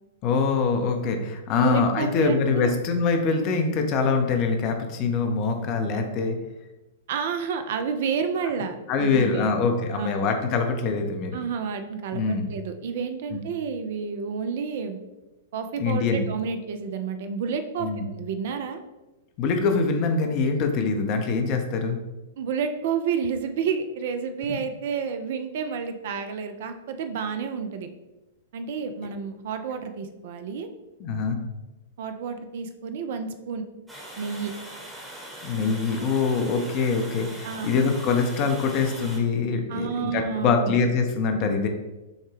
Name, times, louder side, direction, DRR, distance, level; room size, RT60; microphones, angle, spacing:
voice 1, 0.2-6.4 8.9-11.4 12.1-12.5 13.3-13.4 15.8-16.3 17.8-18.0 19.4-22.0 31.0-31.4 35.4-41.7, left 4 dB, 40° left, 5 dB, 0.6 m, -24 dB
voice 2, 1.6-2.8 7.1-9.5 9.9-10.3 11.3-15.0 15.5-18.8 22.4-27.9 28.5-30.7 32.0-33.6 34.2-34.5 37.4-37.8 39.7-40.8, right 6 dB, 55° right, 8 dB, 0.4 m, -30 dB
Water, 33.9-39.2, right 1 dB, 5° right, 1.0 m, -41 dB
6.3 x 2.2 x 3.3 m, 1.0 s
figure-of-eight pair, 105°, 0 cm